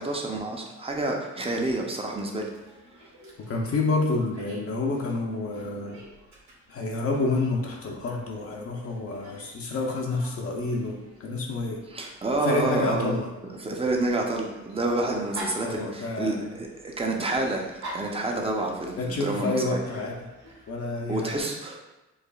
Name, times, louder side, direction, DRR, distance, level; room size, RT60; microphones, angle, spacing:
voice 1, 0.0-2.5 11.9-13.1 13.6-19.8 21.1-21.8, right 2 dB, 20° right, 0 dB, 0.6 m, -28 dB
Dog, 2.4-20.7, right 1 dB, 65° right, 1.3 m, -47 dB
voice 2, 3.5-6.0 6.7-11.8 12.4-13.3 15.6-16.4 19.0-20.2 20.7-21.3, left 3 dB, 50° left, -1 dB, 0.6 m, -28 dB
4.7 x 2.4 x 2.3 m, 1.0 s
cardioid pair, 90°, 30 cm